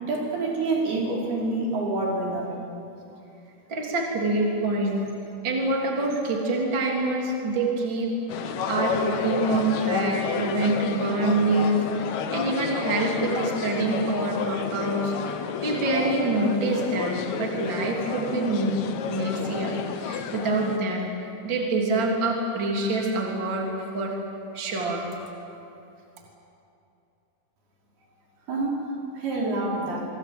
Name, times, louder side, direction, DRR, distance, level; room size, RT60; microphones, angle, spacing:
voice 1, 0.0-2.5 28.5-28.8 29.1-30.1, right 2 dB, 70° right, -3 dB, 6.8 m, -27 dB
voice 2, 3.7-5.0 5.4-8.1 8.4-21.1 21.4-24.2 24.5-25.0, right 2 dB, 30° right, -1 dB, 3.7 m, -26 dB
sound 1, 8.3-20.8, left 7 dB, 65° left, 1.9 m, -31 dB
25.5 x 24.5 x 7.9 m, 2.7 s
omnidirectional pair, 4.6 m